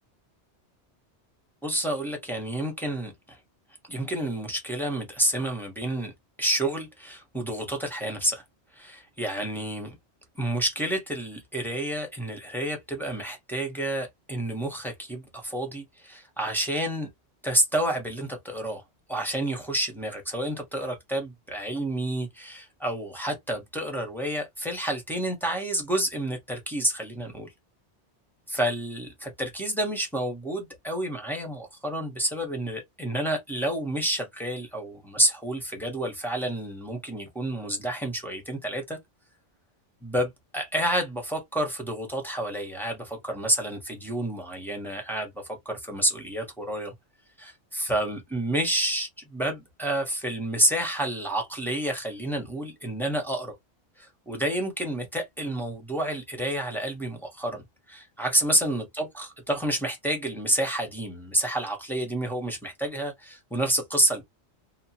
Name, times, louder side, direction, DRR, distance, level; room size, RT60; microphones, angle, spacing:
voice 1, 1.6-3.4 3.9-6.1 6.4-8.4 8.7-10.0 10.4-17.1 17.4-18.8 19.1-27.5 28.5-39.0 40.0-46.9 47.4-53.5 54.0-64.2, right 1 dB, ahead, 0.7 m, -29 dB
2.8 x 2.1 x 2.7 m
omnidirectional pair, 1.2 m